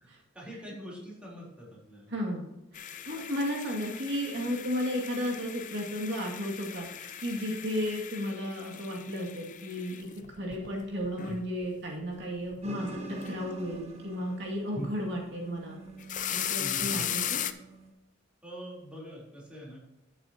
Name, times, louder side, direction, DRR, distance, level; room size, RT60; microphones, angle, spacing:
voice 1, 0.3-2.1 14.7-14.9 16.6-17.0 18.4-19.8, right 1 dB, 5° right, -5 dB, 3.7 m, -43 dB
voice 2, 2.1-10.1 10.4-15.8 16.3-17.4, equal, 65° right, -1 dB, 2.3 m, -34 dB
sound 1, 2.7-11.7 12.1-12.6 12.9-13.4 13.7-13.8 15.9-17.5, left 10 dB, 40° left, 0.6 m, -38 dB
sound 2, 12.6-17.9, right 2 dB, 35° right, 1.6 m, -45 dB
11.5 x 8.8 x 2.9 m, 0.93 s
head